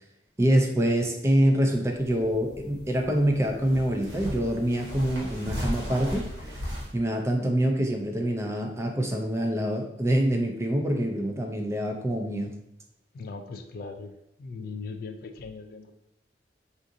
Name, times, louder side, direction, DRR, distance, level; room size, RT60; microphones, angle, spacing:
voice 1, 0.4-6.3 6.9-12.5, right 1 dB, 15° right, 3 dB, 0.4 m, -25 dB
sound 1, 1.8-6.9, equal, 75° right, 1.2 m, -37 dB
voice 2, 13.1-14.1 14.4-15.9, left 4 dB, 60° left, 7 dB, 0.3 m, -39 dB
3.7 x 2.5 x 2.6 m, 0.82 s
head